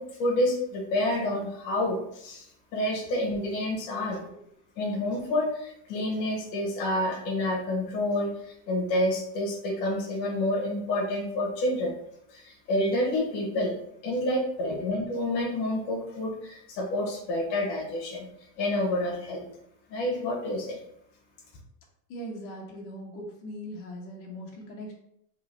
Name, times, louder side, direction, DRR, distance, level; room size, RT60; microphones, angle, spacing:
voice 1, 0.0-4.2 4.8-11.9 12.3-13.8 14.0-18.3 18.6-19.5 19.9-20.8, left 1 dB, 85° left, -1 dB, 1.4 m, -28 dB
voice 2, 4.0-4.5 14.6-14.8 22.1-24.9, equal, 60° left, -2 dB, 1.5 m, -40 dB
3.8 x 3.2 x 3.2 m, 0.75 s
supercardioid pair, 135°, 50 cm